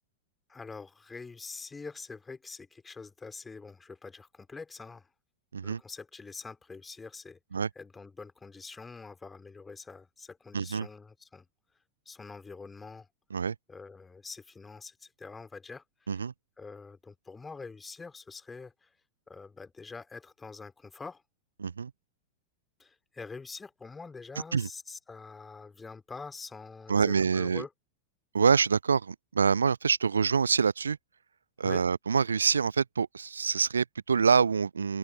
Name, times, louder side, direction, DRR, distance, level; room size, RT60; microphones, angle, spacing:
voice 1, 0.5-5.1 5.6-7.4 7.7-11.4 12.0-13.1 13.7-16.2 16.6-18.9 19.3-21.2 22.8-27.7 31.6-31.9, left 4 dB, 15° left, 3.4 m, -45 dB
voice 2, 10.5-10.9 13.3-13.6 16.1-16.3 21.6-21.9 24.5-24.7 26.9-27.6 28.3-31.0 31.6-35.0, right 6 dB, 75° right, 0.4 m, -26 dB
open air
figure-of-eight pair, 90°, 0 cm